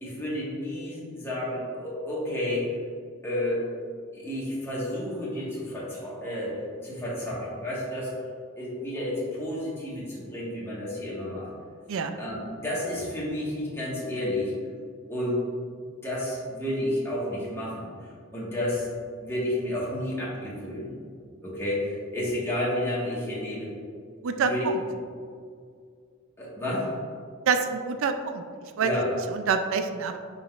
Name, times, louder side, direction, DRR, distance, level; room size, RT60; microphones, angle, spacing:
voice 1, 0.0-2.7 3.2-3.7 4.1-8.2 8.6-11.5 12.1-14.5 15.1-15.4 15.7-17.9 18.3-18.9 19.2-20.9 21.4-23.8 24.5-24.7 26.4-26.9 28.8-29.1, left 1 dB, 10° left, -7 dB, 1.5 m, -31 dB
voice 2, 24.2-24.8 27.5-28.4 28.8-28.9 29.3-30.2, right 5 dB, 65° right, 8 dB, 0.4 m, -26 dB
9.8 x 3.9 x 2.4 m, 2.2 s
head